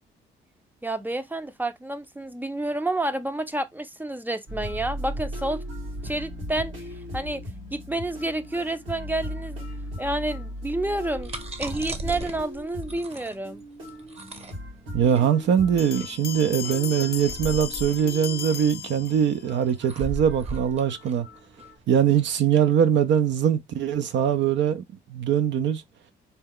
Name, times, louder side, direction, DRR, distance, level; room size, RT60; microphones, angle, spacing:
voice 1, 0.8-5.6 6.0-6.9 7.1-7.4 7.7-9.7 10.0-11.3 11.6-13.6, right 1 dB, 10° right, 0.5 m, -29 dB
sound 1, 4.5-21.8, equal, 85° right, 2.7 m, -38 dB
sound 2, 10.9-22.3, right 2 dB, 30° right, 0.8 m, -38 dB
voice 2, 14.9-21.3 21.9-24.8 25.1-25.8, right 9 dB, 65° right, 0.5 m, -22 dB
Bell, 15.8-19.6, left 10 dB, 55° left, 0.4 m, -36 dB
4.0 x 2.3 x 3.6 m
cardioid pair, 90°, 20 cm